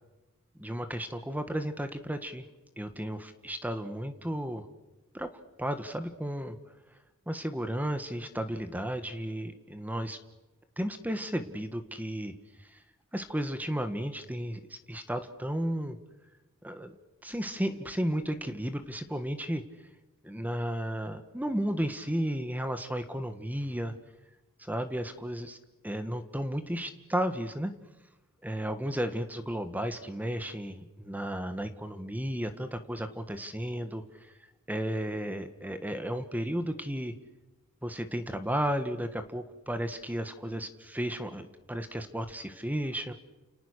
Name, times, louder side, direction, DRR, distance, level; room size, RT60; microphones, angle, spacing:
voice 1, 0.6-2.4 2.8-4.7 5.1-5.3 5.6-6.6 7.3-10.2 10.8-12.3 12.7-12.8 13.1-16.0 16.6-16.9 17.2-19.6 20.2-23.9 24.6-25.6 25.8-27.7 28.4-34.0 34.7-37.1 37.8-43.1, equal, 10° right, 9 dB, 1.5 m, -33 dB
30.0 x 29.0 x 6.6 m, 1.0 s
head